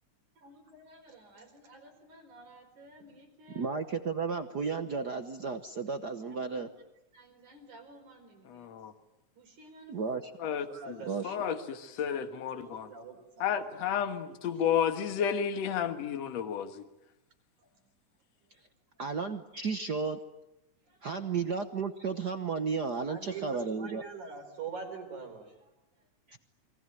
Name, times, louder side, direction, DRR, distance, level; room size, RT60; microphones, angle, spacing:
voice 1, 0.4-3.7 6.5-6.6 7.1-8.7 9.4-10.0 10.7-12.2 12.5-13.5 20.9-21.0 23.1-25.5, right 5 dB, 80° right, 5 dB, 6.0 m, -46 dB
voice 2, 3.5-6.7 9.9-10.3 11.1-11.4 19.0-20.2 21.0-24.0 26.3-26.4, right 5 dB, 60° right, 8 dB, 1.1 m, -33 dB
voice 3, 8.5-8.9 10.4-12.9 13.4-16.8, left 8 dB, 65° left, 8 dB, 2.7 m, -32 dB
29.0 x 22.5 x 9.1 m, 0.88 s
omnidirectional pair, 3.4 m